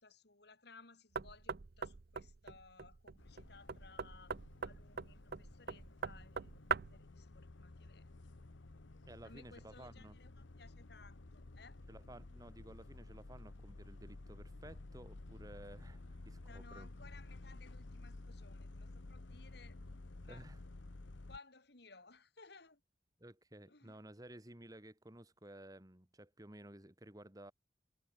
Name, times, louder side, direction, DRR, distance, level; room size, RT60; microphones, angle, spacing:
voice 1, 0.0-4.3 4.6-8.3 9.2-11.8 16.5-19.8 20.2-20.5 21.3-22.8 23.7-24.0, left 4 dB, 60° left, 2.8 m, -60 dB
Knock, 1.1-7.1, right 5 dB, 55° right, 0.6 m, -42 dB
sound 1, 3.2-21.4, left 2 dB, 80° left, 1.1 m, -53 dB
voice 2, 9.1-10.2 11.9-16.9 20.3-20.6 23.2-27.5, right 1 dB, 20° right, 2.0 m, -55 dB
head